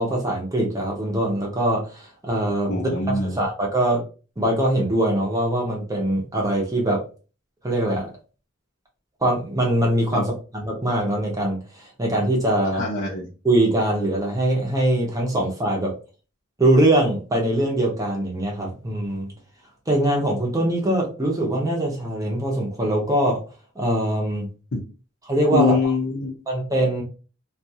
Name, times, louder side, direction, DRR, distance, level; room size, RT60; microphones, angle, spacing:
voice 1, 0.0-4.0 4.4-7.0 7.6-8.1 9.2-12.8 13.4-15.9 16.6-19.3 19.9-23.4 23.8-24.5 25.3-25.8 26.5-27.0, right 1 dB, 20° right, -1 dB, 0.8 m, -22 dB
voice 2, 2.7-3.4 10.1-10.2 12.8-13.3 24.7-24.8 25.5-26.3, left 4 dB, 80° left, -5 dB, 0.7 m, -24 dB
2.5 x 2.3 x 2.7 m, 0.35 s
head